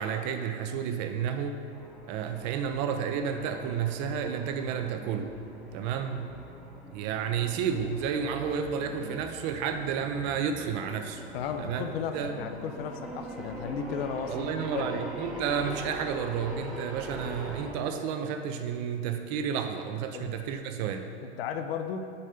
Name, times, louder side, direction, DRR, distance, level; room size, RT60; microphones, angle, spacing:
voice 1, 0.0-1.6 2.1-5.3 5.7-6.3 6.9-11.2 11.6-11.8 12.1-12.4 14.3-21.1, right 7 dB, 40° right, 7 dB, 0.5 m, -31 dB
sound 1, 1.7-17.7, equal, ahead, 0.8 m, -43 dB
voice 2, 11.3-15.0 20.1-20.3 21.2-22.0, left 7 dB, 55° left, 8 dB, 0.6 m, -35 dB
6.7 x 4.2 x 5.1 m, 2.5 s
hypercardioid pair, 100°, 36 cm